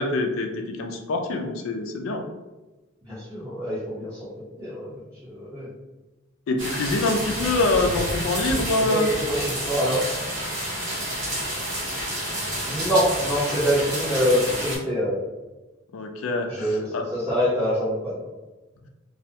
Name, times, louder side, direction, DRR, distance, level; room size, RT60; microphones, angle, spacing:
voice 1, 0.0-2.2 6.5-9.1 15.9-17.0, left 2 dB, 90° left, 4 dB, 0.4 m, -25 dB
voice 2, 3.1-4.3 4.6-5.7 8.8-10.0 12.6-15.2 16.5-18.1, equal, 15° right, -11 dB, 0.8 m, -25 dB
sound 1, 6.6-14.8, right 1 dB, 60° right, 0.8 m, -29 dB
2.3 x 2.1 x 2.7 m, 1.1 s
head